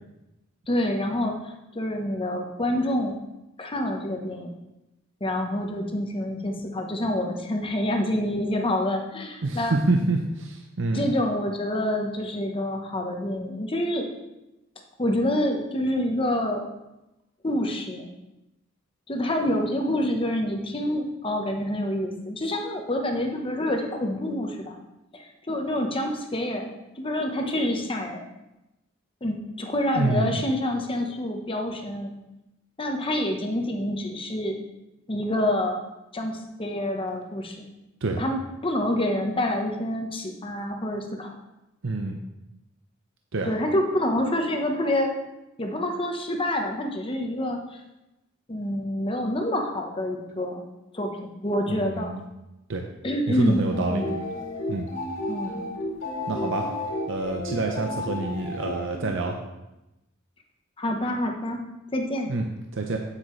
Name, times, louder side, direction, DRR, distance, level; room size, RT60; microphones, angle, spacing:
voice 1, 0.7-1.4 1.7-3.2 3.6-4.5 5.2-9.8 10.9-14.1 15.0-16.6 17.4-18.1 19.1-24.8 25.1-28.3 29.2-32.1 32.8-34.6 35.1-35.8 36.1-37.6 38.2-41.3 43.4-45.1 45.6-47.6 48.5-50.6 50.9-52.1 53.0-53.6 53.9-54.1 55.3-55.5 60.8-61.6 61.9-62.3, left 1 dB, 25° left, 3 dB, 1.0 m, -27 dB
voice 2, 9.4-11.0 29.9-30.4 38.0-38.2 41.8-42.2 43.3-43.5 51.7-52.2 52.7-52.8 53.3-54.0 54.7-54.9 56.3-56.7 57.1-59.4 62.3-62.4 62.7-63.0, right 2 dB, 65° right, 3 dB, 0.7 m, -27 dB
sound 1, 53.7-59.3, left 1 dB, 75° left, 2.7 m, -32 dB
8.8 x 8.2 x 3.2 m, 0.95 s
head